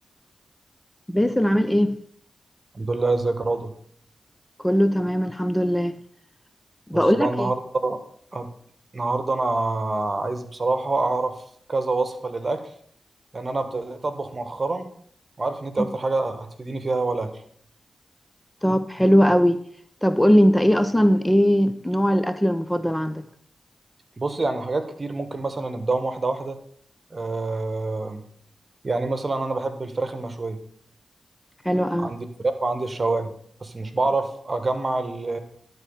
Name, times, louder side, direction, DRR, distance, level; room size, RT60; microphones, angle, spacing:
voice 1, 1.1-2.0 4.6-5.9 6.9-7.5 18.6-19.6 20.0-23.2 31.6-32.1, equal, 10° left, 11 dB, 0.6 m, -20 dB
voice 2, 2.7-3.7 6.9-8.0 8.3-8.5 8.9-11.4 11.7-12.7 13.3-14.9 15.4-17.4 24.2-26.6 27.1-28.2 28.8-30.6 32.0-33.3 33.6-35.4, right 3 dB, 45° right, 9 dB, 1.4 m, -26 dB
11.0 x 4.1 x 7.1 m, 0.63 s
cardioid pair, 45°, 0 cm